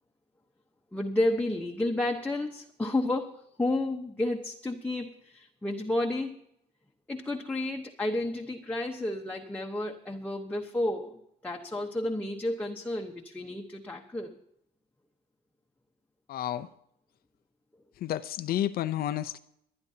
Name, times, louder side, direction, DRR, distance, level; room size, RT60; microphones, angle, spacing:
voice 1, 0.9-6.3 7.1-14.4, left 1 dB, 10° left, 1.0 m, -31 dB
voice 2, 16.3-16.7 18.0-19.4, left 12 dB, 65° left, 0.6 m, -31 dB
28.0 x 9.7 x 2.8 m
cardioid pair, 110°, 17 cm